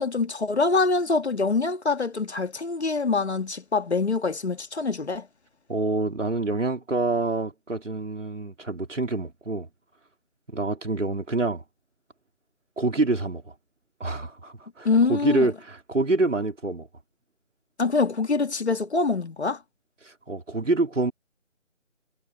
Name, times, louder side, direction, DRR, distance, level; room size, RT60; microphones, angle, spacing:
voice 1, 0.0-5.3 14.8-15.5 17.8-19.6, left 4 dB, 60° left, 2.1 m, -24 dB
voice 2, 5.7-9.7 10.5-11.6 12.8-13.5 14.0-16.9 20.0-21.1, right 2 dB, 75° right, 4.2 m, -26 dB
figure-of-eight pair, 165°, 38 cm